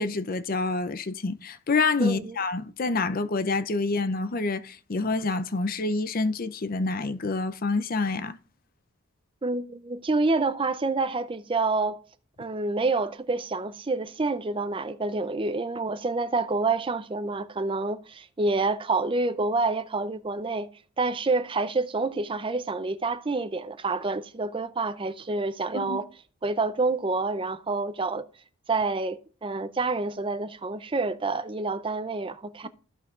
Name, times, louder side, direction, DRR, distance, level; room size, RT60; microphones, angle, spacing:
voice 1, 0.0-8.4 25.7-26.0, left 3 dB, 40° left, 0.5 m, -27 dB
voice 2, 2.0-2.4 9.4-12.0 12.4-20.7 21.0-26.1 26.4-28.3 28.7-32.7, right 3 dB, 25° right, 0.4 m, -28 dB
15.5 x 5.7 x 2.4 m
head